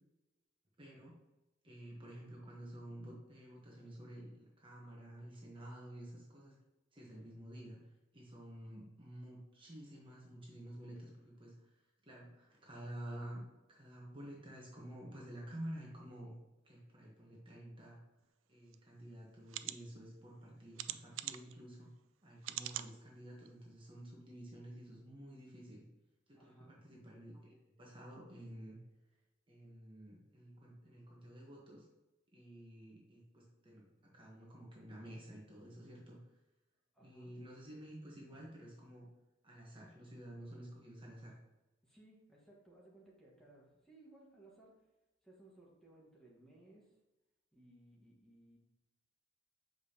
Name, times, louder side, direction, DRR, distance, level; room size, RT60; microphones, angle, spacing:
voice 1, 0.8-1.1 1.6-6.6 6.9-7.8 8.1-11.7 12.0-13.4 13.7-16.3 16.6-18.0 18.5-21.9 22.2-25.8 26.3-28.8 29.5-31.9 32.3-36.2 37.0-39.1 39.4-41.4, right 1 dB, 25° right, -3 dB, 1.2 m, -51 dB
sound 1, 18.7-18.8 19.5-19.8 20.8-21.5 22.4-22.9 23.5-23.6 23.9-24.0, right 13 dB, 80° right, 0.3 m, -42 dB
voice 2, 26.3-26.9 36.9-37.3 41.8-44.9 45.2-46.9 47.5-48.6, right 2 dB, 5° left, -4 dB, 1.5 m, -62 dB
7.1 x 5.1 x 2.9 m, 1.0 s
head